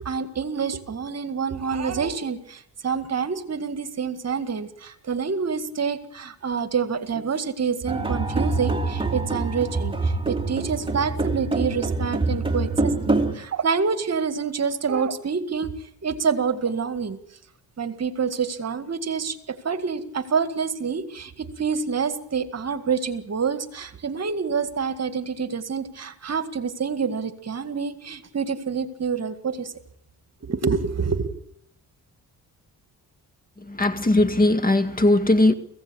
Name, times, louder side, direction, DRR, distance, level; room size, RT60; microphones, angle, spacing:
voice 1, 0.0-15.7 16.0-17.2 17.8-29.7 30.4-31.3, right 6 dB, 45° right, 2.0 m, -27 dB
sound 1, 7.9-13.3, right 3 dB, 15° right, 3.1 m, -25 dB
voice 2, 33.6-35.5, left 1 dB, 25° left, 2.1 m, -19 dB
24.5 x 16.5 x 8.7 m
cardioid pair, 85°, 36 cm